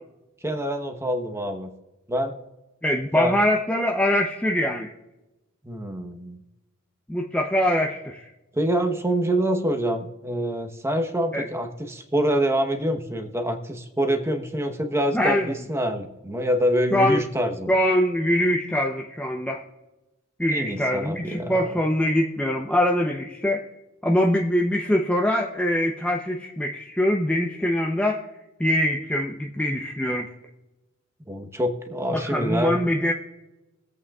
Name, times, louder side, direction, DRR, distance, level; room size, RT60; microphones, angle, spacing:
voice 1, 0.4-1.7 2.1-2.3 3.1-3.4 5.6-6.4 8.5-17.7 20.5-21.8 31.3-32.8, equal, 15° right, 5 dB, 1.0 m, -26 dB
voice 2, 2.8-4.9 7.1-8.3 11.3-11.5 15.1-15.5 16.9-17.2 17.7-19.6 20.4-23.7 24.0-28.2 28.6-30.3 32.1-33.1, left 1 dB, 5° left, 0 dB, 0.7 m, -23 dB
22.5 x 8.3 x 2.4 m, 1.0 s
head